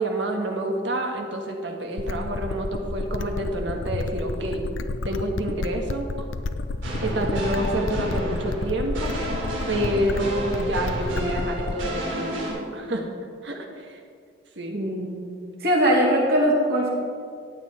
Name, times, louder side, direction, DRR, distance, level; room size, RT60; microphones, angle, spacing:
voice 1, 0.0-4.6 5.0-6.3 7.0-9.1 9.7-13.1 13.4-14.0 14.5-14.8, right 1 dB, 70° right, 2 dB, 1.6 m, -28 dB
sound 1, 2.0-12.0, left 2 dB, 85° left, 0.6 m, -30 dB
sound 2, 6.8-12.5, right 1 dB, 85° right, 3.4 m, -32 dB
voice 2, 14.7-15.2 15.6-16.9, equal, 50° right, -3 dB, 2.8 m, -20 dB
15.0 x 9.6 x 4.3 m, 2.2 s
head